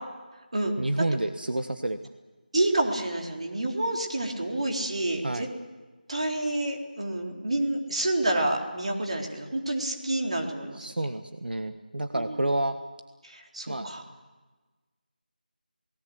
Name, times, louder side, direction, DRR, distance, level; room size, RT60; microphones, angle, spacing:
voice 1, 0.8-2.0 5.2-5.5 10.7-12.7 13.7-13.9, right 1 dB, 80° right, 8 dB, 1.5 m, -29 dB
voice 2, 2.5-5.5 6.1-10.7 12.1-12.4 13.3-14.0, right 1 dB, 40° right, 1 dB, 3.8 m, -28 dB
28.0 x 19.0 x 8.0 m, 1.3 s
figure-of-eight pair, 180°, 5 cm